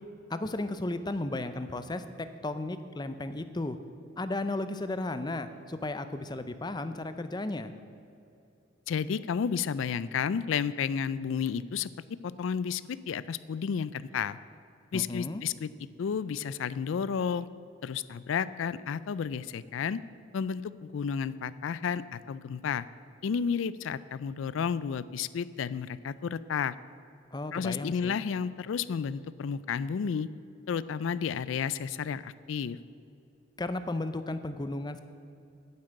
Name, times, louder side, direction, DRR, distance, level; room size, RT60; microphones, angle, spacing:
voice 1, 0.3-2.0 2.4-3.8 4.2-7.7 14.9-15.4 27.3-28.2 33.6-35.0, left 2 dB, 20° left, 11 dB, 0.5 m, -34 dB
voice 2, 8.9-11.9 12.2-14.4 14.9-15.7 16.0-17.5 17.8-20.0 20.3-22.8 23.2-26.7 27.5-30.3 30.7-32.8, left 6 dB, 70° left, 17 dB, 0.3 m, -32 dB
9.7 x 7.7 x 8.9 m, 2.6 s
head